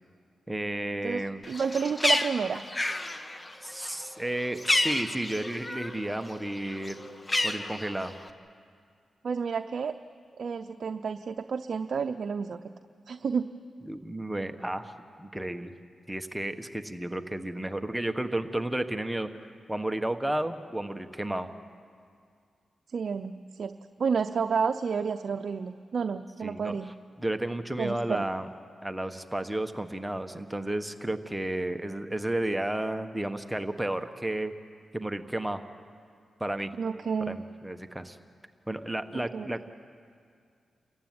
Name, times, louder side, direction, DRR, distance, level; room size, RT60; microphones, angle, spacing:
voice 1, 0.5-1.4 3.6-7.1 7.4-8.2 13.8-14.9 15.2-15.7 16.1-21.5 26.4-28.5 28.8-34.5 34.9-35.6 36.4-36.7 37.2-38.2 38.7-39.6, right 1 dB, 10° right, 8 dB, 1.3 m, -32 dB
voice 2, 1.0-2.6 9.2-9.9 10.4-12.6 13.1-13.5 22.9-23.7 24.0-26.9 27.8-28.2 36.8-37.4 39.3-39.5, right 6 dB, 65° right, 7 dB, 0.7 m, -30 dB
Bird, 1.4-6.0 6.4-8.3, left 1 dB, 25° left, 1.4 m, -30 dB
29.0 x 15.0 x 9.6 m, 2.2 s
cardioid pair, 60°, 0 cm